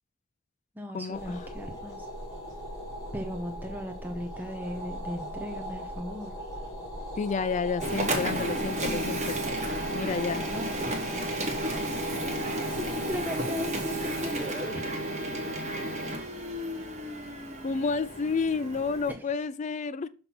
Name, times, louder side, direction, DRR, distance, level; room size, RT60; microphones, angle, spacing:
voice 1, 0.8-2.1 3.1-6.3 10.5-11.0 12.3-15.0 19.1-19.2, equal, 10° right, 0.6 m, -37 dB
sound 1, 1.1-14.4, equal, 20° left, 3.8 m, -39 dB
voice 2, 7.2-9.3 9.9-10.4 17.6-20.1, left 4 dB, 35° left, 0.3 m, -30 dB
Printer, 7.8-19.1, right 1 dB, 35° right, 1.4 m, -32 dB
6.0 x 5.3 x 5.9 m
head